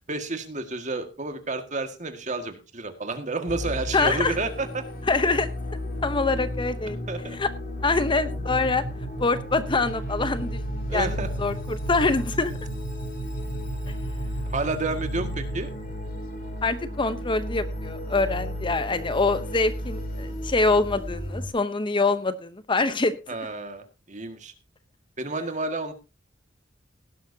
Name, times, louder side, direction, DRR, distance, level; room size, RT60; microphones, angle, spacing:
voice 1, 0.0-4.9 7.1-7.4 10.9-11.3 14.5-15.7 23.3-24.5 25.2-25.9, right 3 dB, 40° right, 7 dB, 1.8 m, -30 dB
sound 1, 3.5-21.5, left 1 dB, 50° left, 2.9 m, -33 dB
voice 2, 3.9-4.4 5.1-5.5 6.0-7.0 7.3-7.5 7.8-8.8 9.2-10.6 10.9-11.1 11.4-12.5 16.6-23.1, left 3 dB, 25° left, 12 dB, 0.8 m, -24 dB
sound 2, 8.4-15.9, right 4 dB, 85° left, 3.2 m, -38 dB
17.5 x 11.5 x 2.8 m, 0.29 s
head